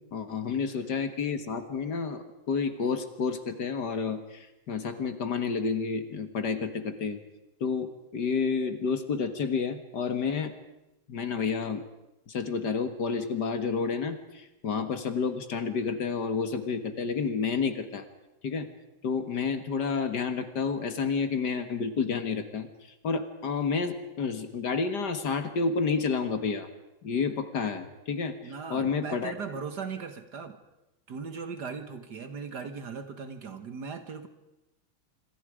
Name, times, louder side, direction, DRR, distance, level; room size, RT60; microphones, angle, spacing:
voice 1, 0.0-7.2 7.6-10.5 11.1-11.8 12.3-18.0 18.4-18.7 19.0-22.7 23.0-26.7 27.0-28.4 28.7-29.3, left 5 dB, 55° left, 9 dB, 2.1 m, -30 dB
voice 2, 28.4-30.6 31.1-34.3, right 5 dB, 55° right, 9 dB, 2.0 m, -38 dB
26.0 x 25.5 x 5.0 m, 0.95 s
omnidirectional pair, 2.2 m